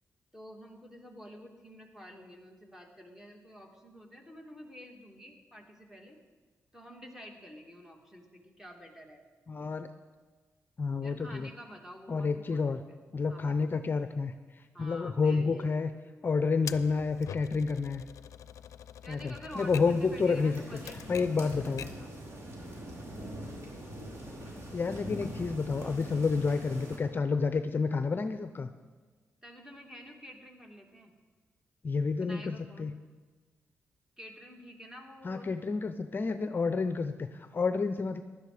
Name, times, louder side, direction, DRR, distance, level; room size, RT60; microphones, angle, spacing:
voice 1, 0.3-6.2 6.7-9.2 11.0-12.8 13.3-13.7 14.7-15.7 16.1-16.5 19.0-22.1 29.4-31.1 32.2-32.9 34.2-35.5, equal, 5° right, 2 dB, 2.4 m, -49 dB
voice 2, 9.5-9.9 10.8-11.5 12.1-12.8 13.1-15.9 16.2-18.0 19.1-20.6 21.1-21.8 24.7-28.7 31.8-32.9 35.2-38.2, left 4 dB, 40° left, 9 dB, 0.6 m, -30 dB
Typewriter, 16.7-22.1, left 9 dB, 80° left, 0.5 m, -45 dB
sound 1, 19.5-27.0, equal, 55° right, 3.7 m, -43 dB
16.0 x 11.5 x 5.0 m, 1.4 s
cardioid pair, 80°, 5 cm